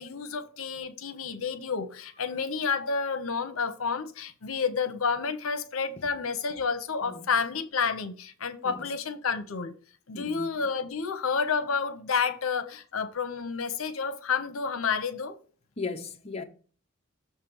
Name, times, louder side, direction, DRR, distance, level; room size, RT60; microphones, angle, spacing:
voice 1, 0.0-9.7 10.1-15.4, left 5 dB, 70° left, 0.8 m, -30 dB
voice 2, 10.1-10.5 15.8-16.4, left 4 dB, 30° left, 0.6 m, -36 dB
6.6 x 3.4 x 6.1 m
head